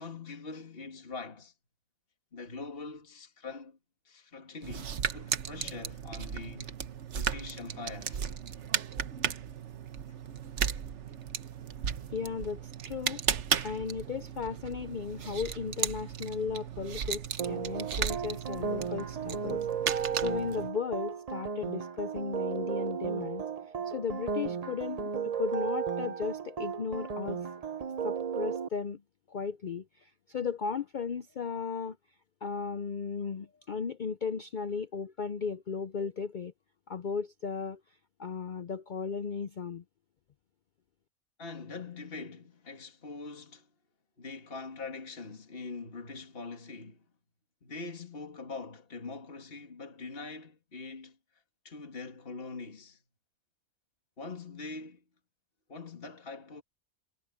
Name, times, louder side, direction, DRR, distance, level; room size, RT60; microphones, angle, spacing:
voice 1, 0.0-1.5 2.3-3.8 4.0-6.7 7.1-8.2 41.4-43.7 44.2-47.1 47.6-51.2 51.6-53.0 54.2-55.0 55.7-56.6, left 3 dB, 40° left, 2.5 m, -43 dB
sound 1, 4.6-20.7, right 8 dB, 55° right, 1.1 m, -35 dB
voice 2, 12.1-13.2 13.6-19.6 20.2-23.4 23.9-25.1 25.4-27.5 28.0-29.0 29.3-32.0 32.4-36.5 36.9-37.8 38.2-39.8, left 6 dB, 80° left, 0.4 m, -36 dB
sound 2, 17.4-28.7, right 6 dB, 40° right, 0.6 m, -34 dB
omnidirectional pair, 1.6 m